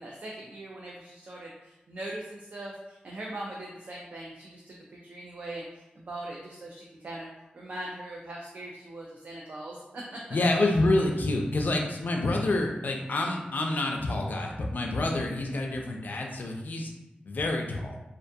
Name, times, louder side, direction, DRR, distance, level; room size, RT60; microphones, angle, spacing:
voice 1, 0.0-7.3 7.5-10.2, right 1 dB, 50° right, -3 dB, 0.4 m, -41 dB
voice 2, 10.3-16.9 17.3-17.9, left 2 dB, 60° left, 1 dB, 0.4 m, -27 dB
2.4 x 2.3 x 2.6 m, 0.96 s
wide cardioid pair, 100°, 3 cm